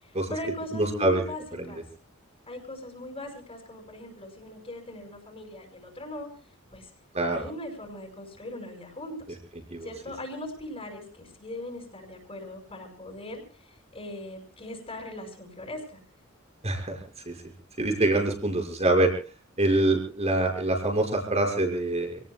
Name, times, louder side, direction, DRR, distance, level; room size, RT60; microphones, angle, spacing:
voice 1, 0.0-1.4 1.7-1.8 2.5-6.3 6.7-6.9 7.2-9.2 9.8-16.0, left 1 dB, 30° left, 1 dB, 5.7 m, -40 dB
voice 2, 0.7-1.2 1.6-1.7 7.1-7.5 9.7-9.9 16.6-17.0 17.3-17.4 17.8-19.1 19.6-22.2, right 2 dB, 30° right, 3 dB, 6.0 m, -25 dB
28.5 x 19.0 x 2.3 m, 0.38 s
head